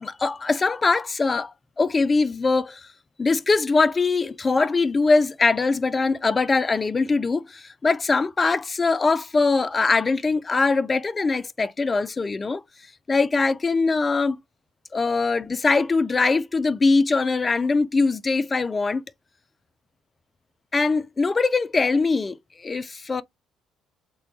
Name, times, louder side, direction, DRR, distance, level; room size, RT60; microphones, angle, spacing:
voice 1, 0.0-1.5 1.8-2.9 3.2-12.6 13.1-14.4 14.9-19.0 20.7-23.2, left 3 dB, 30° left, 0.3 m, -22 dB
3.5 x 2.3 x 3.5 m
figure-of-eight pair, 50°, 0 cm